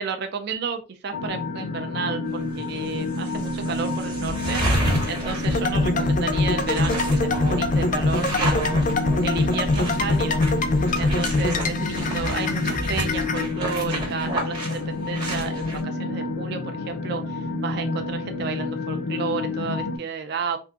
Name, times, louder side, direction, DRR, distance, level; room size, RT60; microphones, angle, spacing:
voice 1, 0.0-4.7 5.1-8.9 9.2-10.4 11.0-20.6, right 5 dB, 55° right, 7 dB, 0.4 m, -32 dB
sound 1, 1.1-20.0, left 2 dB, 85° left, 0.6 m, -29 dB
sound 2, 2.7-2.8 3.1-15.8, right 1 dB, 25° right, 0.9 m, -31 dB
sound 3, 5.4-13.4, left 2 dB, 40° left, 0.4 m, -24 dB
3.5 x 2.5 x 2.7 m, 0.31 s
head